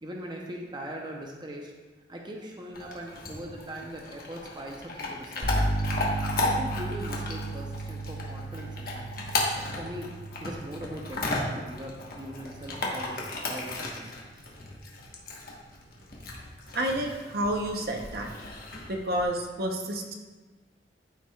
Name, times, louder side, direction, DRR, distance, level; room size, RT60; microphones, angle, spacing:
voice 1, 0.0-1.7 2.1-5.5 6.4-9.3 9.5-10.1 10.4-14.5, equal, 25° right, 0 dB, 0.7 m, -40 dB
Chewing mastication / Dog, 2.7-19.2, left 2 dB, 55° left, 1.2 m, -35 dB
sound 1, 5.4-13.1, right 2 dB, 80° right, 1.4 m, -34 dB
voice 2, 16.7-18.3 18.9-20.1, right 1 dB, 60° right, 2 dB, 0.8 m, -29 dB
12.5 x 4.7 x 2.3 m, 1.3 s
head